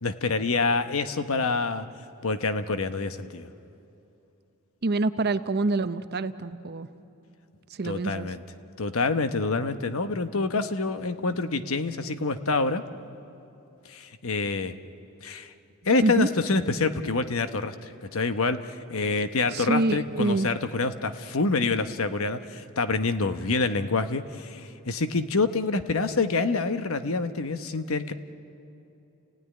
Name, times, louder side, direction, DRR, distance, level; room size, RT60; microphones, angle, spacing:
voice 1, 0.0-1.9 2.2-3.5 7.8-8.4 8.8-12.8 13.9-14.7 15.2-15.5 15.8-28.1, left 3 dB, 65° left, 10 dB, 1.0 m, -27 dB
voice 2, 4.8-6.9 7.7-8.3 16.0-16.3 19.5-20.5, right 2 dB, 45° right, 12 dB, 0.7 m, -26 dB
29.5 x 16.5 x 9.9 m, 2.8 s
head